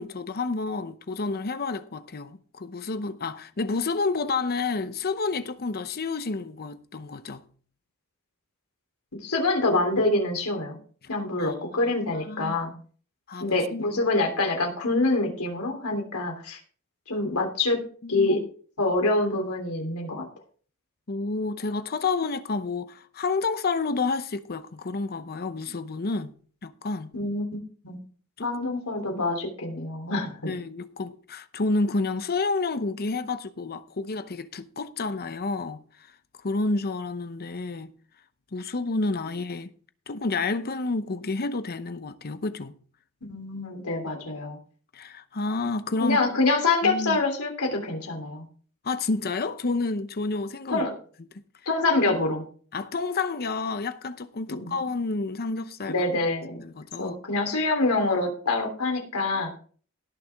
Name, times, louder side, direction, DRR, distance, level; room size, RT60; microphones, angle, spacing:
voice 1, 0.0-7.4 11.4-11.5 12.3-12.5 13.3-14.0 18.0-18.5 21.1-26.3 26.6-27.1 28.4-28.5 30.5-35.8 36.4-37.9 38.5-39.7 40.1-42.8 44.9-46.2 46.8-47.2 48.8-50.8 52.7-55.9 56.6-57.2, left 3 dB, 45° left, 0.8 m, -29 dB
voice 2, 9.2-10.8 11.1-12.7 13.4-16.6 17.1-17.8 18.1-18.4 18.8-20.3 27.1-27.5 27.8-28.0 28.4-30.5 43.2-44.6 46.0-48.4 50.7-50.9 51.6-52.4 54.5-54.8 55.9-56.6 57.0-59.5, left 2 dB, 85° left, 3.3 m, -26 dB
17.5 x 6.8 x 3.5 m
head